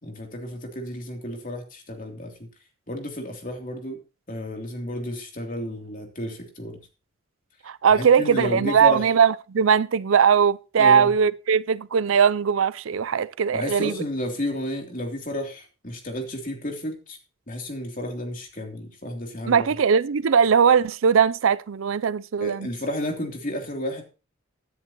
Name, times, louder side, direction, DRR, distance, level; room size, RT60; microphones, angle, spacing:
voice 1, 0.0-2.5 2.9-4.0 4.3-6.8 7.9-9.1 10.8-11.2 13.5-17.2 17.5-19.7 22.4-24.0, left 1 dB, 40° left, 3.0 m, -32 dB
voice 2, 7.7-13.9 19.5-22.7, right 7 dB, 85° right, 0.5 m, -20 dB
16.5 x 10.0 x 3.0 m
head